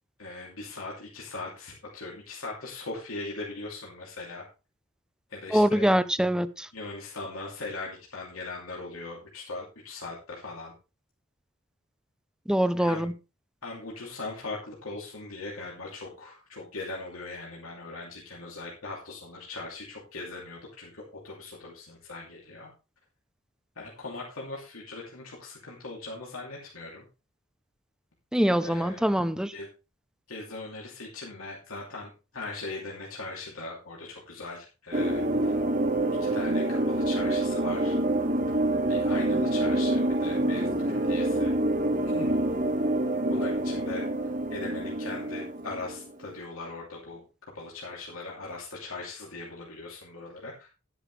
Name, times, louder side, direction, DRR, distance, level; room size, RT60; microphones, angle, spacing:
voice 1, 0.2-4.4 5.3-5.9 6.7-10.7 12.8-13.1 13.6-22.7 23.8-27.0 28.6-29.1 29.5-29.7 30.3-35.5 36.2-37.9 38.9-41.5 42.1-42.4 43.3-44.1 44.5-47.2 47.5-50.7, left 3 dB, 85° left, 2.9 m, -40 dB
voice 2, 5.5-6.7 12.5-13.1 28.3-29.5, equal, 5° right, 0.5 m, -24 dB
sound 1, 34.9-46.1, right 1 dB, 40° right, 1.5 m, -27 dB
12.0 x 10.0 x 3.3 m
head